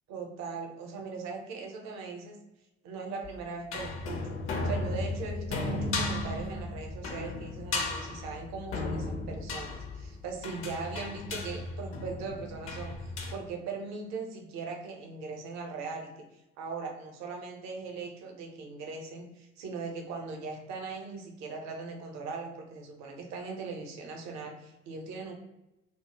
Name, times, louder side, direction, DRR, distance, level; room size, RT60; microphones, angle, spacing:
voice 1, 0.1-2.4 2.8-4.4 4.6-25.3, right 4 dB, 55° right, 2 dB, 0.6 m, -40 dB
sound 1, 3.2-13.4, left 2 dB, 40° left, 0.5 m, -35 dB
2.0 x 2.0 x 3.0 m, 0.93 s
figure-of-eight pair, 50°, 33 cm